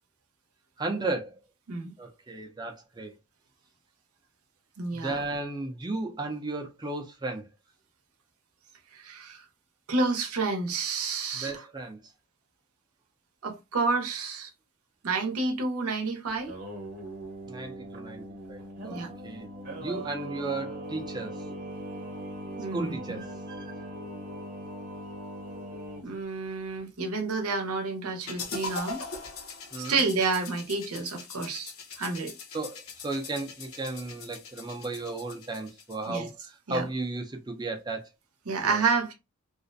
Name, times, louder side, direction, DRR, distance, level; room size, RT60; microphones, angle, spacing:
voice 1, 0.8-1.4 2.0-3.1 4.9-7.5 11.3-12.0 17.5-19.5 19.8-21.4 22.7-23.7 29.7-30.0 32.5-38.1 38.6-38.8, right 2 dB, 20° right, 0.4 m, -35 dB
voice 2, 4.8-5.2 8.9-9.4 9.9-11.7 13.4-14.5 15.0-16.5 18.8-19.1 22.6-23.2 26.0-29.0 29.8-31.7 32.0-32.3 36.1-36.3 36.7-36.8 38.5-39.1, right 4 dB, 80° right, 0.7 m, -29 dB
Singing, 16.3-26.0, right 1 dB, 40° right, 0.8 m, -40 dB
sound 1, 28.3-36.3, left 4 dB, 70° left, 0.6 m, -41 dB
2.4 x 2.1 x 2.5 m
head